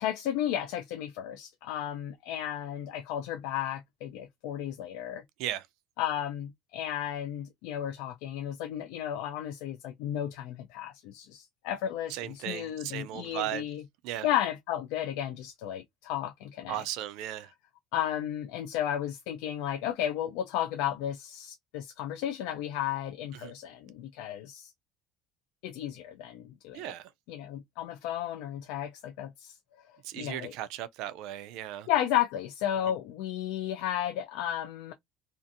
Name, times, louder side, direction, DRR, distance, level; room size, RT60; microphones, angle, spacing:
voice 1, 0.0-5.2 6.0-13.8 14.2-16.8 17.9-24.7 25.6-26.9 27.3-29.9 30.1-30.5 31.9-34.9, left 11 dB, 75° left, 0.4 m, -33 dB
voice 2, 12.1-13.6 14.0-14.3 16.7-17.5 23.4-23.5 26.7-27.1 30.0-31.9, right 13 dB, 65° right, 0.3 m, -36 dB
2.6 x 2.4 x 2.5 m
cardioid pair, 155°, 0 cm